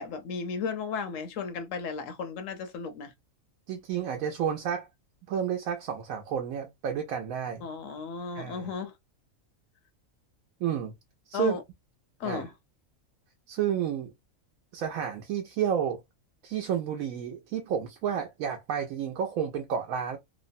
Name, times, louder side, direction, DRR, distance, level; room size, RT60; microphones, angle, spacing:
voice 1, 0.0-3.1 7.6-8.9 11.3-11.6 12.2-12.5, left 5 dB, 75° left, 0.9 m, -34 dB
voice 2, 3.7-4.9 5.3-7.7 8.3-8.7 10.6-10.9 11.3-11.5 12.2-12.4 13.5-14.1 14.7-16.0 16.4-20.2, right 8 dB, 85° right, 1.0 m, -31 dB
3.0 x 2.0 x 2.5 m
omnidirectional pair, 1.4 m